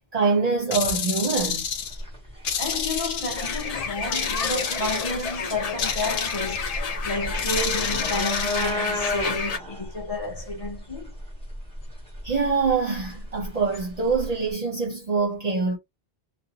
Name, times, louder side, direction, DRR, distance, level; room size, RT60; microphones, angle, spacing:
voice 1, 0.1-1.6 12.2-15.8, right 4 dB, 45° right, 0.7 m, -24 dB
sound 1, 0.7-2.0 2.4-3.7 4.1-5.4 5.8-6.8 7.4-8.7, left 7 dB, 80° left, 0.9 m, -30 dB
sound 2, 1.4-14.5, equal, 5° left, 1.0 m, -34 dB
voice 2, 2.6-6.7 7.0-11.1, left 2 dB, 35° left, 1.0 m, -31 dB
sound 3, 3.4-9.6, left 5 dB, 50° left, 0.5 m, -31 dB
2.6 x 2.1 x 2.7 m
omnidirectional pair, 1.0 m